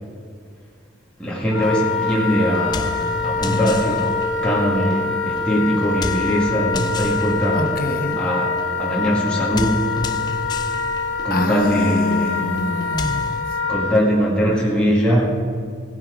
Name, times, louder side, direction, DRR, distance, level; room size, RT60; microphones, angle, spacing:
voice 1, 1.2-3.0 3.2-4.2 4.4-7.8 8.2-9.9 11.2-12.4 13.7-15.3, equal, 5° left, -5 dB, 1.8 m, -21 dB
Wind instrument woodwind instrument, 1.5-14.0, left 4 dB, 75° left, 2.1 m, -25 dB
sound 1, 1.6-13.4, left 2 dB, 20° left, 0.4 m, -32 dB
voice 2, 7.5-8.2 11.3-13.3, left 2 dB, 50° left, 5 dB, 1.1 m, -25 dB
16.0 x 8.8 x 5.0 m, 2.2 s
head